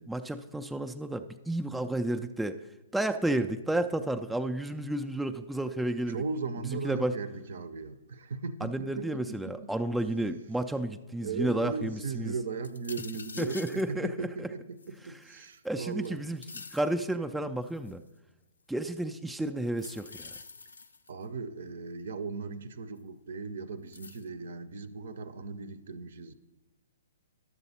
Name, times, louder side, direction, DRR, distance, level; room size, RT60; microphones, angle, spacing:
voice 1, 0.0-2.6 2.9-6.2 6.8-7.1 8.6-12.3 13.4-14.5 15.6-16.4 16.7-18.0 18.7-20.3, right 1 dB, 5° right, 6 dB, 0.3 m, -31 dB
voice 2, 6.1-9.7 11.2-16.3 21.1-26.3, right 4 dB, 55° right, 14 dB, 0.6 m, -37 dB
sound 1, 12.6-13.9 14.8-15.7 16.0-16.9 17.6-18.1 19.7-21.2 23.0-23.1 23.9-24.3, left 4 dB, 70° left, 0.5 m, -47 dB
11.0 x 7.0 x 4.1 m, 1.1 s
figure-of-eight pair, 120°, 0 cm